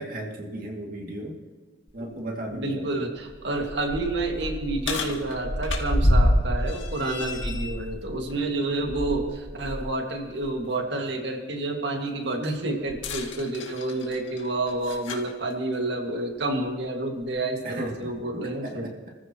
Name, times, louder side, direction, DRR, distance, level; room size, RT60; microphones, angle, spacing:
voice 1, 0.0-1.4 1.9-2.9 8.3-8.4 17.6-19.1, right 1 dB, 45° right, 0 dB, 2.4 m, -36 dB
sound 1, 1.9-2.0 2.5-2.6 3.2-9.9 10.3-10.5 12.9-15.3 16.3-16.4 17.2-17.3, left 1 dB, 85° left, 1.9 m, -28 dB
voice 2, 2.0-18.9, right 2 dB, 65° right, 2 dB, 2.1 m, -29 dB
29.5 x 14.5 x 3.1 m, 1.5 s
head